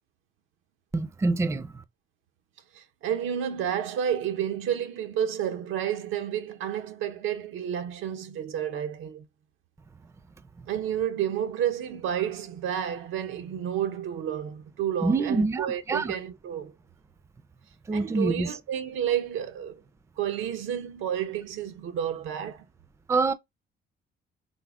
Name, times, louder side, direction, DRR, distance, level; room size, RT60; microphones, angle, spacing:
voice 1, 0.9-1.8 15.0-16.2 17.9-18.5 23.1-23.3, right 3 dB, 15° right, 0.3 m, -26 dB
voice 2, 2.7-9.2 10.7-16.7 17.9-19.8 20.2-22.6, right 9 dB, 90° right, 0.6 m, -30 dB
3.6 x 2.0 x 3.4 m
cardioid pair, 90°, 20 cm